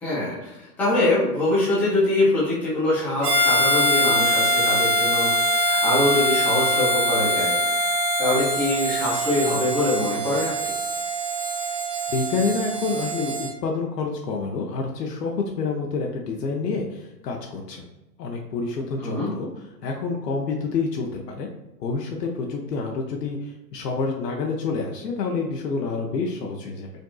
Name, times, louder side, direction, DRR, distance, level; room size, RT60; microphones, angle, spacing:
voice 1, 0.0-10.7 19.0-19.3, left 2 dB, 5° left, -10 dB, 0.4 m, -24 dB
Harmonica, 3.2-13.5, equal, 60° right, 1.2 m, -23 dB
voice 2, 12.1-17.9 18.2-19.5 19.8-21.5 21.8-26.9, left 4 dB, 75° left, 0 dB, 0.8 m, -28 dB
5.1 x 2.6 x 2.3 m, 0.99 s
hypercardioid pair, 140°, 50 cm